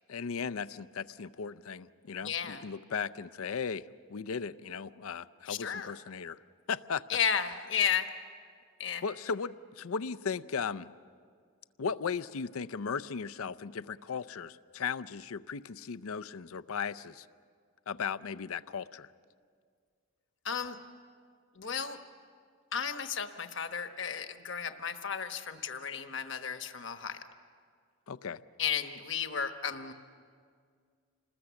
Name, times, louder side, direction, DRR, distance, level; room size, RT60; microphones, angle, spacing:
voice 1, 0.1-3.8 4.1-6.4 6.7-7.0 9.0-10.9 11.8-17.3 17.9-19.1 28.1-28.4, left 6 dB, 75° left, 14 dB, 0.5 m, -36 dB
voice 2, 2.2-2.6 5.5-5.9 7.1-8.1 8.8-9.0 20.4-20.8 21.6-22.0 22.7-27.2 28.6-29.9, left 7 dB, 55° left, 8 dB, 1.1 m, -33 dB
27.5 x 20.5 x 7.1 m, 2.1 s
head